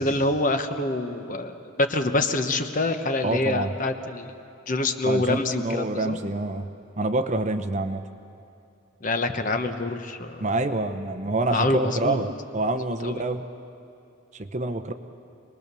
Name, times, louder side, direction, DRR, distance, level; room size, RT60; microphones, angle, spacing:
voice 1, 0.0-4.3 4.7-6.2 9.0-10.4 11.5-12.2 13.0-13.2, left 2 dB, 40° left, 7 dB, 1.1 m, -26 dB
voice 2, 3.2-3.7 5.0-6.7 7.0-8.1 10.4-13.4 14.4-14.9, right 2 dB, 35° right, 8 dB, 0.7 m, -27 dB
26.5 x 20.5 x 6.8 m, 2.6 s
head